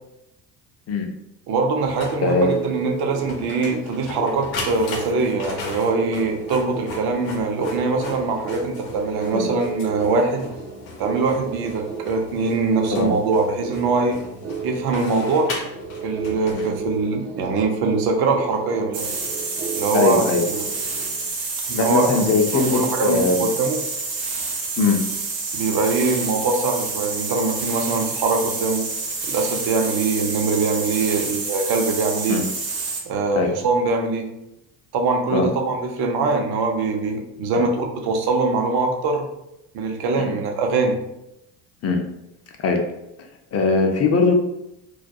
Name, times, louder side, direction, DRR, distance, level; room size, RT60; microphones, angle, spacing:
voice 1, 1.5-10.4 11.0-14.2 14.6-15.5 16.0-19.1 19.8-20.7 21.7-23.8 25.5-28.8 29.2-32.4 33.1-34.3 34.9-39.3 39.7-41.0, right 3 dB, 55° right, 3 dB, 0.6 m, -23 dB
Printer, 1.8-17.2, left 3 dB, 85° left, 0.7 m, -38 dB
sound 1, 1.9-21.3, right 6 dB, 25° right, 0.3 m, -33 dB
voice 2, 2.2-2.7 9.3-9.5 12.9-13.1 16.5-16.7 19.9-20.4 21.7-23.4 24.8-25.0 32.3-32.4 33.3-33.5 35.3-35.5 37.5-37.6 40.2-40.3 41.8-42.0 42.6-42.8 43.5-44.3, left 3 dB, 35° left, 4 dB, 0.5 m, -20 dB
sound 2, 18.9-33.1, right 3 dB, 80° right, 0.9 m, -28 dB
2.3 x 2.2 x 2.6 m, 0.86 s
supercardioid pair, 75°, 47 cm